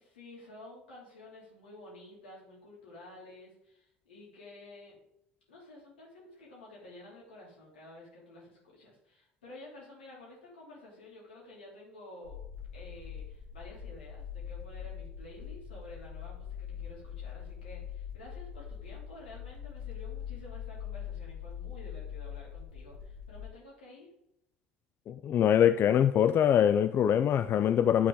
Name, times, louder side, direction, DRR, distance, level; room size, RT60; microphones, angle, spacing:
voice 1, 0.0-5.0 5.5-12.4 12.7-24.1, left 2 dB, 90° left, 2.9 m, -51 dB
sound 1, 12.2-23.5, left 8 dB, 80° right, 1.0 m, -42 dB
voice 2, 25.1-28.1, left 9 dB, 45° left, 0.3 m, -24 dB
9.4 x 4.1 x 3.8 m
hypercardioid pair, 70°, 5 cm